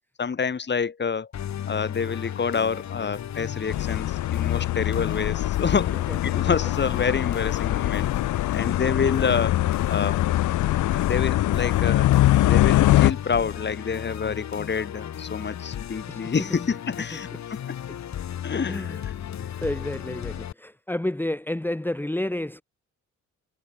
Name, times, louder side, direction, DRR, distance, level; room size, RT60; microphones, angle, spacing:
voice 1, 0.2-1.3 1.7-8.1 8.5-10.2 10.9-12.1 12.4-17.3 18.4-19.1, left 5 dB, 35° left, 3.7 m, -28 dB
Musical instrument, 1.3-20.5, left 10 dB, 65° left, 5.2 m, -35 dB
sound 1, 3.7-13.1, left 15 dB, 85° left, 1.6 m, -23 dB
voice 2, 5.9-6.4 16.1-16.6 17.9-18.0 18.7-19.0 19.4-22.6, left 1 dB, 5° left, 2.3 m, -31 dB
cardioid pair, 90°, 30 cm